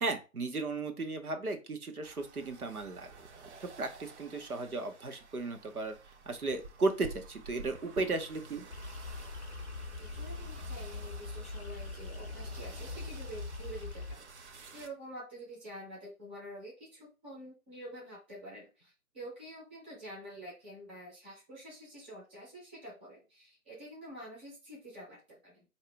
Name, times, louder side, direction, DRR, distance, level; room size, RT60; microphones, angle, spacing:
voice 1, 0.0-3.1 3.6-5.9 6.3-8.7, right 3 dB, 80° right, 5 dB, 1.1 m, -35 dB
sound 1, 2.0-14.9, right 4 dB, 50° right, 0.8 m, -51 dB
sound 2, 8.7-14.2, left 3 dB, 45° left, 0.5 m, -42 dB
voice 2, 10.0-25.6, right 1 dB, 10° right, -7 dB, 0.6 m, -48 dB
4.3 x 2.8 x 3.4 m, 0.30 s
figure-of-eight pair, 140°, 44 cm